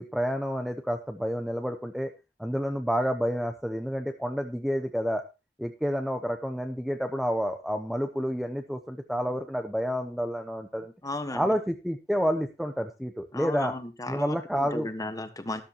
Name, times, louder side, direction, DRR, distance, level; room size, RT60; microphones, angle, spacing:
voice 1, 0.0-2.1 2.4-5.2 5.6-10.9 11.3-13.7 14.1-14.9, equal, ahead, 6 dB, 0.8 m, -29 dB
voice 2, 11.0-11.5 13.3-15.6, left 2 dB, 20° left, 9 dB, 1.3 m, -35 dB
13.0 x 12.5 x 2.9 m, 0.28 s
head